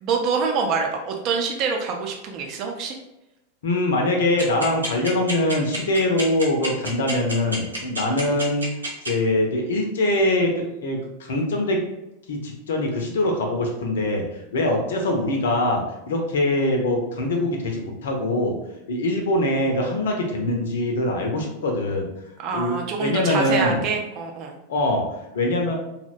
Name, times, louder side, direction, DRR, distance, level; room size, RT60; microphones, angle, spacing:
voice 1, 0.0-3.0 22.4-24.5, right 5 dB, 40° right, 2 dB, 0.5 m, -25 dB
voice 2, 3.6-8.7 9.0-11.9 12.3-14.2 14.5-18.6 18.9-22.1 22.5-23.8 24.7-25.0 25.3-25.7, left 1 dB, 60° left, 2 dB, 0.5 m, -23 dB
sound 1, 4.4-9.1, right 1 dB, 80° right, 0.7 m, -28 dB
2.7 x 2.1 x 2.4 m, 0.91 s
figure-of-eight pair, 90°, 0 cm